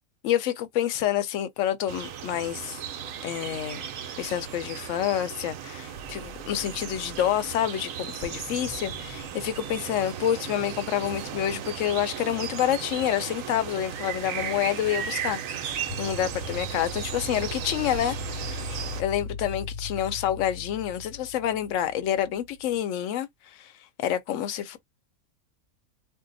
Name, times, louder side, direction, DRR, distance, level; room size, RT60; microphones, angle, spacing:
voice 1, 0.2-2.8 3.2-3.8 4.2-23.7 24.0-24.8, left 11 dB, 70° left, 0.9 m, -28 dB
sound 1, 1.9-19.0, right 9 dB, 70° right, 1.0 m, -36 dB
sound 2, 5.9-7.4 7.7-7.8 8.2-12.6 15.7-22.8, left 3 dB, 35° left, 0.7 m, -40 dB
2.7 x 2.1 x 3.8 m
omnidirectional pair, 1.5 m